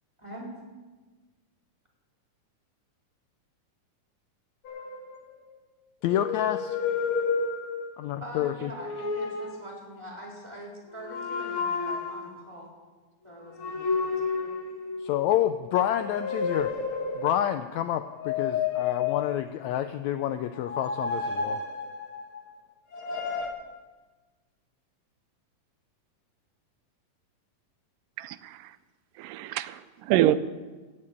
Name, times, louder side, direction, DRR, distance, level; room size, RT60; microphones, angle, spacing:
voice 1, 0.2-0.5 8.2-12.7 13.2-14.5, equal, 10° right, -3 dB, 3.6 m, -43 dB
sound 1, 4.6-5.6 6.1-8.1 8.7-9.7 11.0-12.4 13.6-15.3 15.8-17.5 18.1-19.7 20.6-22.4 22.9-23.5, left 5 dB, 50° left, 1.8 m, -31 dB
voice 2, 6.0-6.8 8.0-8.7 15.0-16.7 17.1-21.6, left 11 dB, 90° left, 9 dB, 1.6 m, -28 dB
voice 3, 28.2-28.6 29.2-30.4, right 13 dB, 85° right, 13 dB, 2.1 m, -26 dB
16.0 x 6.7 x 8.6 m, 1.3 s
omnidirectional pair, 3.8 m